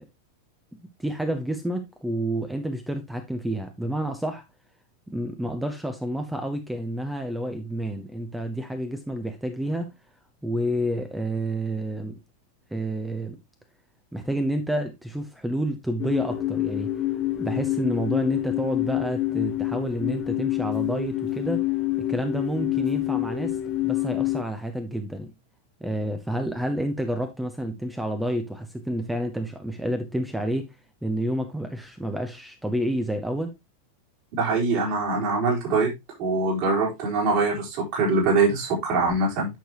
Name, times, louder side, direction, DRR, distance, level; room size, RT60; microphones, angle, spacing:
voice 1, 1.0-4.4 5.1-9.9 10.4-12.2 12.7-13.4 14.1-16.9 17.4-21.6 22.1-23.6 23.8-25.3 25.8-30.8 31.0-33.5, right 1 dB, 5° right, 0.9 m, -29 dB
sound 1, 16.0-24.4, left 14 dB, 30° left, 1.1 m, -27 dB
voice 2, 34.4-35.9 36.2-39.5, right 3 dB, 45° right, 4.3 m, -23 dB
9.3 x 6.5 x 3.0 m
figure-of-eight pair, 90°, 0 cm